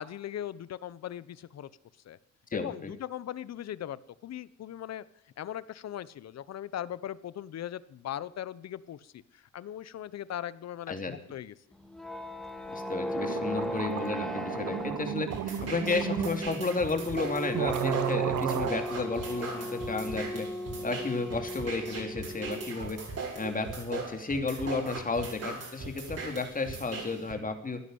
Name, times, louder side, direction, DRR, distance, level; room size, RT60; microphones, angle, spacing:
voice 1, 0.0-1.7 2.0-2.2 2.5-5.0 5.4-11.5, left 11 dB, 60° left, 18 dB, 0.9 m, -39 dB
voice 2, 2.5-2.9 10.9-11.1 12.7-15.3 15.6-20.5 20.8-23.0 23.4-27.8, left 3 dB, 25° left, 6 dB, 3.0 m, -33 dB
sound 1, 11.7-23.0, equal, ahead, 3.2 m, -37 dB
sound 2, 12.9-13.0 13.2-16.4 17.1-17.2 17.5-18.7, right 10 dB, 80° right, 1.6 m, -33 dB
sound 3, 15.3-27.3, right 4 dB, 55° right, 7.3 m, -39 dB
16.0 x 11.5 x 7.9 m, 0.77 s
cardioid pair, 90°, 30 cm